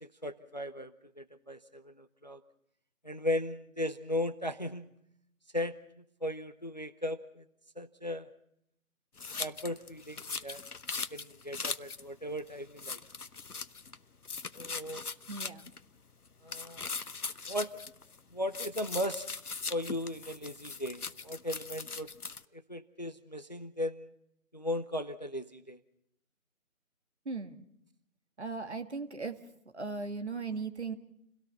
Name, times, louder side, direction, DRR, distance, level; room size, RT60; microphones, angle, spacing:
voice 1, 0.0-2.4 3.0-4.9 5.5-5.7 6.2-7.4 7.8-8.3 9.4-10.6 11.1-13.0 14.6-15.0 16.4-16.9 17.5-17.7 18.3-19.3 19.7-22.1 22.5-24.1 24.5-25.8, left 1 dB, 30° left, 11 dB, 0.8 m, -37 dB
sound 1, 9.2-12.0 12.4-12.5 12.8-14.0 14.2-15.8 16.5-18.2 18.5-22.4, left 4 dB, 85° left, 1.0 m, -40 dB
voice 2, 15.3-15.7 27.3-27.7 28.4-29.4 29.7-30.9, right 4 dB, 50° right, 7 dB, 2.0 m, -37 dB
29.5 x 17.5 x 5.8 m, 0.75 s
figure-of-eight pair, 165°, 44 cm